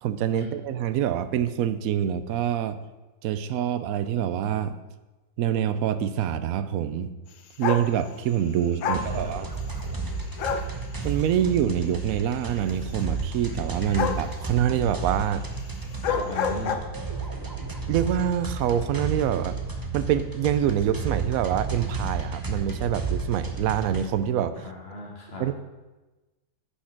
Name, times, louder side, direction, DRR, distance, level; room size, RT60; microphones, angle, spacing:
voice 1, 0.0-2.8 3.2-4.8 5.4-7.1 7.6-9.5 11.0-15.4 17.9-19.6 19.9-24.5 25.4-25.6, right 9 dB, 70° right, 12 dB, 1.0 m, -26 dB
sound 1, 7.6-7.9 8.8-9.1 10.4-10.7 14.0-14.3 15.9-16.8, left 6 dB, 60° left, 0.9 m, -27 dB
voice 2, 8.8-9.3 16.1-16.9 24.6-25.4, left 2 dB, 40° left, -2 dB, 2.1 m, -36 dB
sound 2, 8.9-24.1, right 4 dB, 20° right, 0.7 m, -32 dB
10.0 x 5.6 x 5.8 m, 1.1 s
omnidirectional pair, 1.6 m